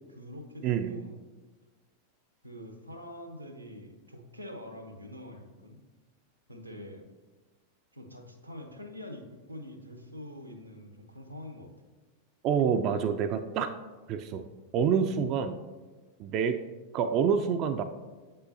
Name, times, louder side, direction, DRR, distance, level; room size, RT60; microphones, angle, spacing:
voice 1, 0.1-1.1 2.4-5.8 6.5-7.1 7.9-11.7, left 1 dB, 90° right, 4 dB, 0.7 m, -45 dB
voice 2, 0.6-1.0 12.4-13.7 14.1-14.4 14.7-15.6 16.2-16.6 16.9-17.8, right 7 dB, 40° right, 8 dB, 0.3 m, -27 dB
7.9 x 5.5 x 2.7 m, 1.3 s
figure-of-eight pair, 90°, 0 cm